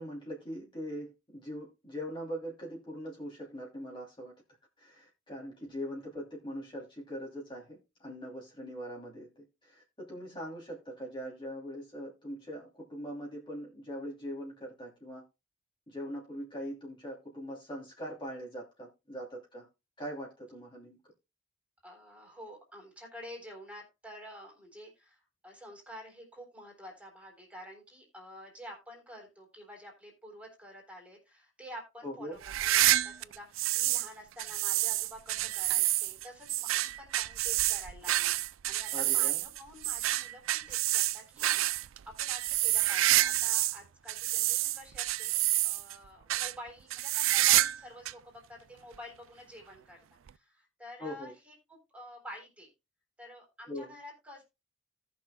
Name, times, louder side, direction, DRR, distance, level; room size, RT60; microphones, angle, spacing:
voice 1, 0.0-4.3 4.8-15.2 15.9-19.7 20.0-21.0 32.0-32.4 38.9-39.4 51.0-51.3 53.7-53.9, equal, 25° left, 2.8 m, -41 dB
voice 2, 21.8-50.0 50.3-52.7 53.2-54.4, equal, 5° right, 3.5 m, -49 dB
sound 1, 32.4-34.1 34.4-43.8 44.1-46.0 46.3-46.5 46.9-47.8 48.1-48.2 48.9-49.0 50.3-50.4, right 16 dB, 85° right, 0.4 m, -28 dB
18.0 x 6.2 x 2.2 m
head